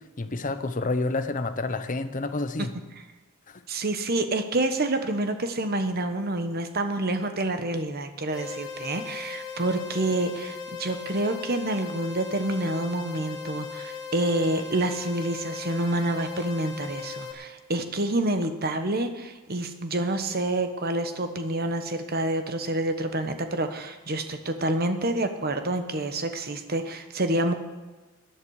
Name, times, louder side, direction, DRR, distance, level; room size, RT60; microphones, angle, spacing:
voice 1, 0.2-2.7 3.5-3.6, left 2 dB, 35° left, 10 dB, 0.8 m, -29 dB
voice 2, 3.7-27.5, right 1 dB, 45° right, 8 dB, 1.1 m, -28 dB
sound 1, 8.3-17.3, left 6 dB, 15° left, 1.8 m, -38 dB
18.0 x 11.0 x 4.9 m, 1.2 s
head